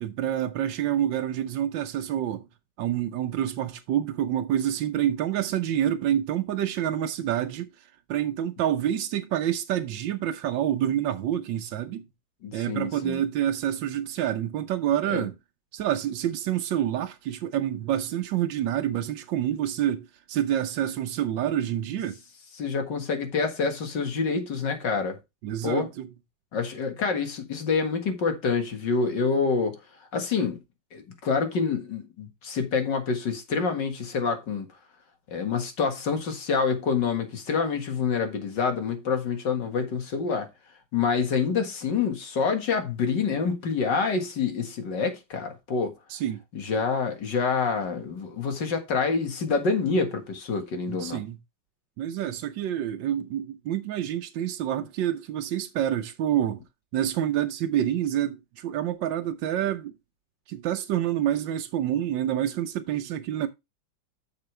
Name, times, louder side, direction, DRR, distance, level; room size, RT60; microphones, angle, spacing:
voice 1, 0.0-2.5 2.8-7.7 8.1-12.1 12.5-15.3 15.7-22.2 25.4-26.1 46.1-46.4 50.9-51.4 52.0-56.6 56.9-59.9 60.5-63.5, right 11 dB, 80° right, 1.5 m, -27 dB
voice 2, 12.4-13.2 15.1-15.3 22.6-25.2 25.6-25.9 26.5-29.8 30.1-30.6 30.9-34.7 35.3-40.5 40.9-46.0 46.6-51.2, left 5 dB, 70° left, 2.4 m, -27 dB
8.7 x 6.8 x 3.2 m
omnidirectional pair, 2.0 m